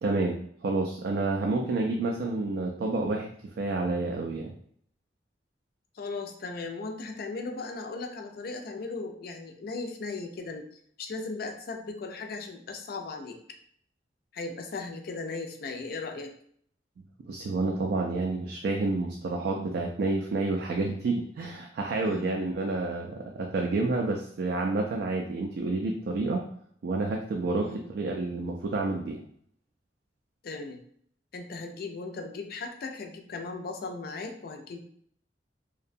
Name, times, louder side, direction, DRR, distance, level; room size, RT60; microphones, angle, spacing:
voice 1, 0.0-4.5 17.3-26.5 26.8-29.2, right 3 dB, 65° right, 1 dB, 0.3 m, -29 dB
voice 2, 5.9-10.7 11.0-13.4 14.3-16.3 22.0-22.4 27.6-27.8 30.4-30.8 31.3-34.9, left 3 dB, 55° left, 4 dB, 0.4 m, -37 dB
2.6 x 2.1 x 2.5 m, 0.63 s
head